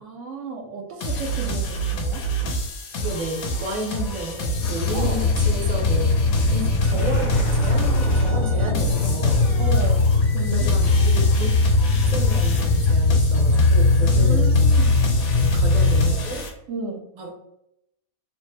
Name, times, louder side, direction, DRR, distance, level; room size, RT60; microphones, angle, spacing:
voice 1, 0.0-2.2 4.9-5.3 9.6-10.0 10.3-10.7 14.0-15.0 16.7-17.0, right 3 dB, 70° right, 1 dB, 0.8 m, -33 dB
sound 1, 1.0-16.5, right 1 dB, 80° left, 1.1 m, -28 dB
voice 2, 3.0-6.1 6.5-9.4 10.5-11.5 11.9-14.7 15.3-16.4 17.1-17.3, right 1 dB, 45° right, 1 dB, 0.5 m, -31 dB
sound 2, 4.4-16.1, left 3 dB, 60° left, 1.0 m, -20 dB
sound 3, 7.0-10.3, left 1 dB, 40° left, 0.8 m, -32 dB
3.2 x 2.0 x 3.2 m, 0.79 s
omnidirectional pair, 1.5 m